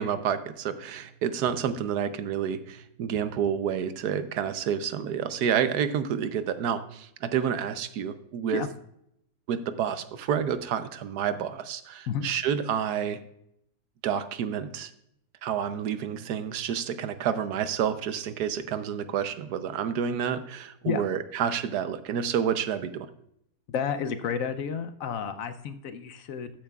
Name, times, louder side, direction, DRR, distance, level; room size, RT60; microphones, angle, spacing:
voice 1, 0.0-8.6 9.5-13.2 14.0-14.9 15.4-23.1, right 8 dB, 85° right, 11 dB, 1.3 m, -29 dB
voice 2, 23.7-26.5, left 7 dB, 70° left, 10 dB, 1.0 m, -31 dB
13.0 x 8.8 x 2.3 m, 0.75 s
omnidirectional pair, 1.6 m